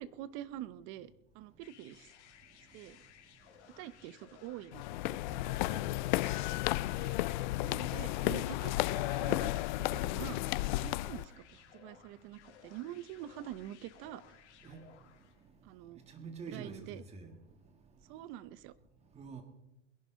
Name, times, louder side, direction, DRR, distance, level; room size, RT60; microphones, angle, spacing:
voice 1, 0.0-2.1 2.7-3.0 3.8-5.2 7.0-7.2 7.6-9.5 9.8-10.5 10.8-14.4 15.6-16.0 16.5-17.0 18.1-18.7, right 12 dB, 35° right, 0.7 m, -46 dB
sound 1, 1.6-15.4, left 9 dB, 65° left, 2.6 m, -60 dB
sound 2, 4.7-11.2, left 17 dB, 40° left, 0.4 m, -33 dB
voice 2, 5.3-5.9 14.6-14.8 16.1-17.3 19.2-19.4, right 5 dB, 15° right, 1.9 m, -46 dB
21.0 x 11.0 x 3.9 m
hypercardioid pair, 135°, 37 cm